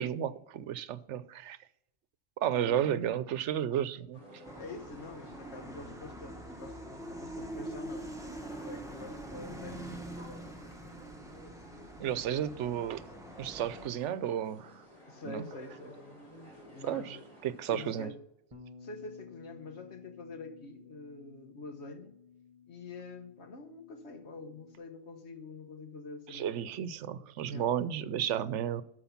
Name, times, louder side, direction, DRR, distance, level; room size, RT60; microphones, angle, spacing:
voice 1, 0.0-1.6 2.4-4.2 12.0-13.0 13.4-14.8 15.2-15.4 16.8-17.2 17.4-18.1 26.3-28.8, right 10 dB, 85° right, 0.9 m, -32 dB
sound 1, 4.1-18.1, equal, 30° left, 3.7 m, -53 dB
voice 2, 4.3-11.0 11.3-12.5 15.0-16.0 16.7-17.2 17.6-18.2 18.8-22.2 22.7-26.8 27.5-27.7, left 3 dB, 70° left, 1.5 m, -47 dB
sound 2, 4.4-13.9, right 1 dB, 5° right, 1.1 m, -44 dB
Bass guitar, 18.5-24.8, left 5 dB, 30° right, 1.2 m, -55 dB
13.0 x 4.7 x 5.7 m
omnidirectional pair, 1.2 m